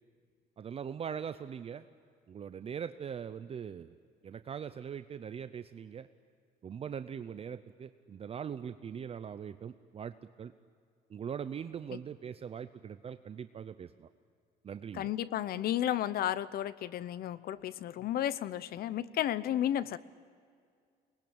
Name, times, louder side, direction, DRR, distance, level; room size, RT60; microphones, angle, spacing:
voice 1, 0.6-1.9 2.3-4.0 4.2-6.1 6.6-10.5 11.1-14.1 14.6-15.1, right 7 dB, 35° right, 11 dB, 0.6 m, -41 dB
voice 2, 14.9-20.0, left 11 dB, 65° left, 17 dB, 0.8 m, -33 dB
24.0 x 20.0 x 8.8 m, 2.1 s
cardioid pair, 110°, 17 cm